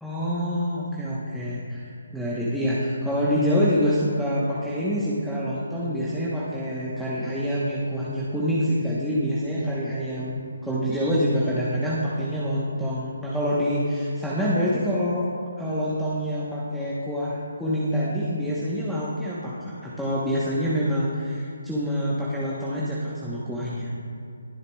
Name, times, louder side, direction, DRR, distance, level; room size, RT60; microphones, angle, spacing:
voice 1, 0.0-15.3 15.6-23.9, equal, ahead, -9 dB, 1.1 m, -26 dB
20.5 x 8.0 x 2.3 m, 2.6 s
figure-of-eight pair, 150°, 0 cm